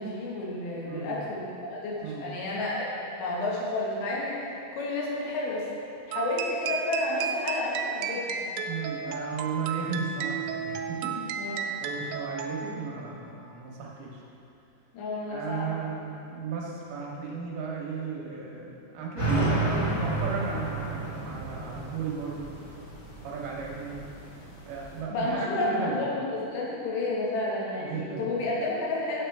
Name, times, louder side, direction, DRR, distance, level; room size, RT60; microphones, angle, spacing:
voice 1, 0.0-2.9 3.2-4.4 4.7-5.7 6.1-8.5 11.4-11.7 14.9-15.7 25.1-29.2, left 2 dB, 80° left, -5 dB, 3.6 m, -31 dB
voice 2, 0.9-1.2 2.0-2.3 8.7-11.2 11.4-14.2 15.3-22.5 23.2-24.0 24.6-26.0 27.8-28.3, right 5 dB, 70° right, -3 dB, 2.7 m, -35 dB
sound 1, 6.1-12.9, right 6 dB, 85° right, 2.8 m, -33 dB
sound 2, 19.2-25.0, right 2 dB, 50° left, 3.3 m, -31 dB
9.0 x 7.9 x 3.4 m, 2.6 s
omnidirectional pair, 5.0 m